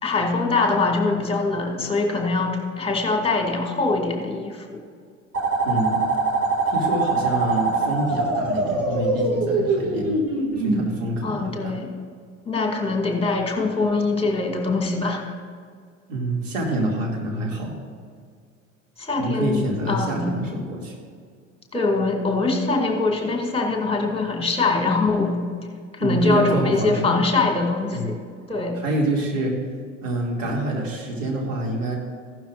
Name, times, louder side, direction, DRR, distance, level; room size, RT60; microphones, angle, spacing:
voice 1, 0.0-4.8 11.2-12.0 12.5-15.3 19.0-20.3 21.7-25.4 25.9-28.2 28.5-28.8, left 3 dB, 15° left, 1 dB, 2.2 m, -23 dB
sound 1, 5.3-10.8, right 3 dB, 35° right, 2.3 m, -23 dB
voice 2, 5.6-6.0 6.7-10.2 10.6-11.7 16.1-17.7 19.2-20.9 26.0-27.1 27.9-28.1 28.8-29.5 30.0-32.0, right 1 dB, 75° right, -1 dB, 2.4 m, -26 dB
15.5 x 12.0 x 2.5 m, 2.1 s
figure-of-eight pair, 70°, 39 cm